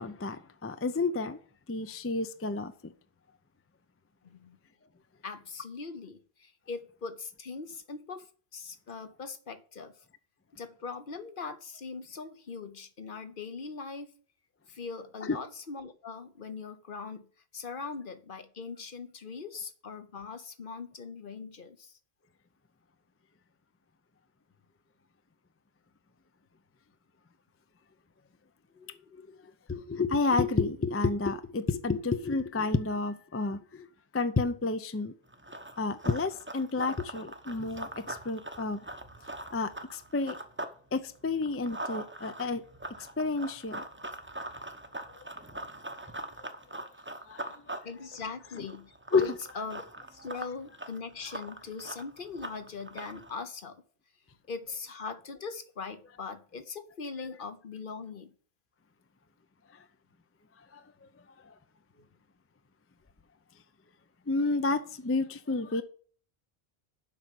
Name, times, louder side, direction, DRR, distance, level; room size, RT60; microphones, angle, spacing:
voice 1, 0.0-1.4 1.7-2.9 15.2-15.4 29.1-29.2 29.7-33.9 34.1-35.1 35.8-38.8 39.5-40.4 40.9-42.6 43.0-43.8 46.1-46.2 46.8-46.9 47.3-47.8 49.1-49.2 59.7-59.8 60.7-60.8 61.4-61.5 64.3-65.8, left 3 dB, 20° left, 0.5 m, -30 dB
voice 2, 4.2-4.6 5.2-9.9 10.5-14.1 14.7-21.9 28.7-29.2 47.8-49.8 50.1-53.8 54.5-58.3, left 4 dB, 55° left, 1.1 m, -41 dB
Run, 35.3-40.8 41.1-53.3, right 1 dB, 10° right, 0.8 m, -42 dB
7.4 x 5.6 x 7.6 m
omnidirectional pair, 1.1 m